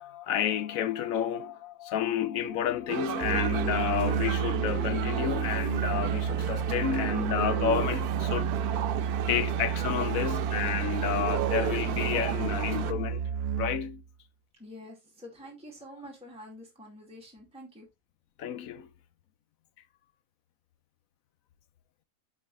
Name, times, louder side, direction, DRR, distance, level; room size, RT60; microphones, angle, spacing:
voice 1, 0.0-8.7 9.3-14.0 18.4-18.9, left 9 dB, 70° left, 1.0 m, -31 dB
sound 1, 2.9-12.9, right 11 dB, 85° right, 1.2 m, -35 dB
Musical instrument, 3.2-14.0, right 7 dB, 65° right, 0.6 m, -30 dB
voice 2, 14.6-17.9, equal, 5° right, 2.4 m, -47 dB
10.5 x 4.4 x 3.2 m
omnidirectional pair, 1.6 m